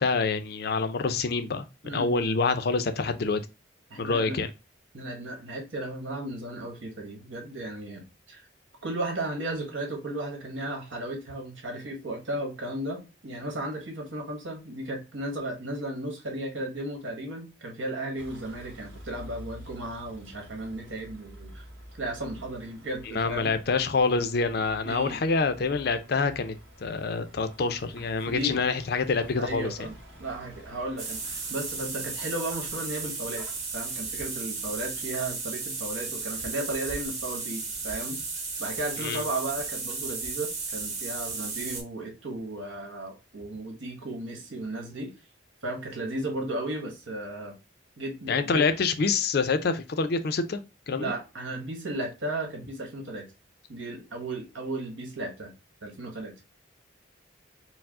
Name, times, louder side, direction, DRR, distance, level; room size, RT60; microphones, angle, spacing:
voice 1, 0.0-1.6 1.9-3.4 4.0-4.5 23.1-26.5 26.8-29.9 39.0-39.2 48.3-50.6 50.9-51.1, left 4 dB, 55° left, 0.4 m, -26 dB
voice 2, 3.9-4.4 4.9-8.5 8.8-21.7 22.0-23.5 24.8-25.2 28.3-28.6 29.4-29.9 30.2-33.4 33.7-45.1 45.6-47.6 48.0-48.6 51.0-53.3 53.7-55.5 55.8-56.3, right 1 dB, 80° right, 1.4 m, -35 dB
Vehicle, 18.2-35.1, equal, 60° right, 1.7 m, -49 dB
sound 1, 31.0-41.8, right 4 dB, 35° right, 1.5 m, -34 dB
4.6 x 2.0 x 3.5 m
head